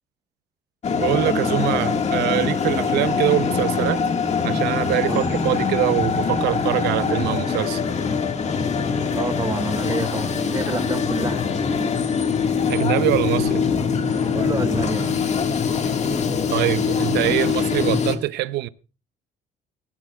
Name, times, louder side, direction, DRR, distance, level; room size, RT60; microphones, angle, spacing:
sound 1, 0.8-18.2, left 5 dB, 40° left, 1.7 m, -23 dB
voice 1, 0.9-4.0 4.4-7.8 12.7-13.7 16.5-18.7, right 16 dB, 80° right, 0.7 m, -23 dB
voice 2, 9.1-11.9 14.3-15.2, right 4 dB, 20° right, 0.7 m, -29 dB
18.0 x 16.5 x 2.3 m
cardioid pair, 110°, 17 cm